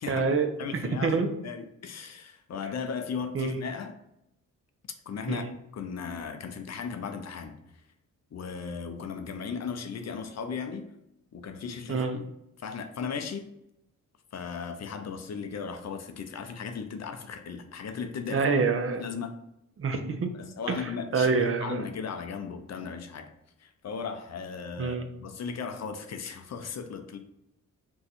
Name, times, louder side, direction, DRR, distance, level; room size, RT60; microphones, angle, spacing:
voice 1, 0.1-0.5 1.0-1.3 3.3-3.6 5.3-5.5 11.9-12.2 18.3-19.0 19.8-20.3 20.7-20.8 21.1-21.8 24.8-25.0, right 4 dB, 40° right, 6 dB, 0.5 m, -26 dB
voice 2, 0.6-3.9 5.1-5.5 5.7-7.5 8.3-10.9 11.3-12.3 12.6-13.5 14.3-18.4 19.0-19.3 20.3-23.3 23.6-27.2, left 6 dB, 50° left, 7 dB, 0.5 m, -36 dB
2.6 x 2.3 x 4.0 m, 0.82 s
cardioid pair, 65°, 34 cm